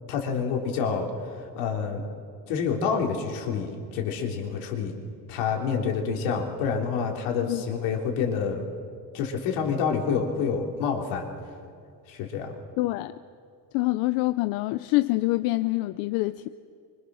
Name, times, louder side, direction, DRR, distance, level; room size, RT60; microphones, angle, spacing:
voice 1, 0.1-1.1 1.6-2.1 2.5-4.9 5.3-8.7 9.1-11.3 12.1-12.5, left 6 dB, 80° left, 2 dB, 3.7 m, -28 dB
voice 2, 12.8-13.1 13.7-16.5, left 19 dB, 65° left, 12 dB, 0.7 m, -26 dB
26.0 x 25.0 x 6.4 m, 2.3 s
cardioid pair, 170°, 39 cm